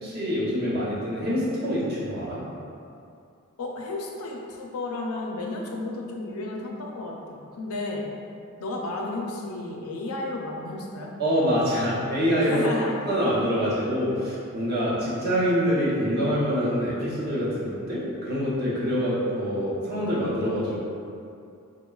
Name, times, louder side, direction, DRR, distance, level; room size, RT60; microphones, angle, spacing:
voice 1, 0.0-2.4 11.2-12.7 13.1-20.8, equal, 50° right, -7 dB, 0.7 m, -25 dB
voice 2, 3.6-8.1 8.6-11.1 12.4-13.0, left 2 dB, 85° left, -1 dB, 0.4 m, -32 dB
3.9 x 2.2 x 2.2 m, 2.5 s
head